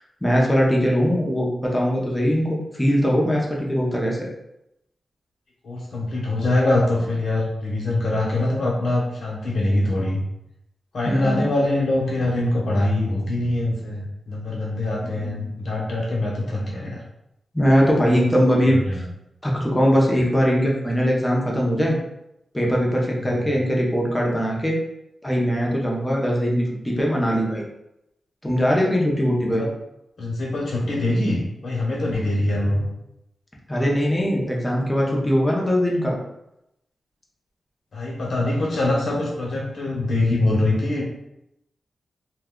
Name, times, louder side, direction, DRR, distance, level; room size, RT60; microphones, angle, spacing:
voice 1, 0.0-4.3 11.1-11.5 15.0-15.4 16.8-16.9 17.5-19.0 19.4-22.0 22.5-24.8 25.2-27.6 28.4-29.7 33.7-36.2, equal, 10° left, -3 dB, 0.6 m, -21 dB
voice 2, 5.6-10.2 10.9-17.0 18.2-18.3 18.7-19.0 23.2-23.6 29.5-29.7 30.2-32.9 37.9-41.2, left 2 dB, 65° left, -3 dB, 0.9 m, -24 dB
2.6 x 2.2 x 3.6 m, 0.85 s
wide cardioid pair, 135°, 0 cm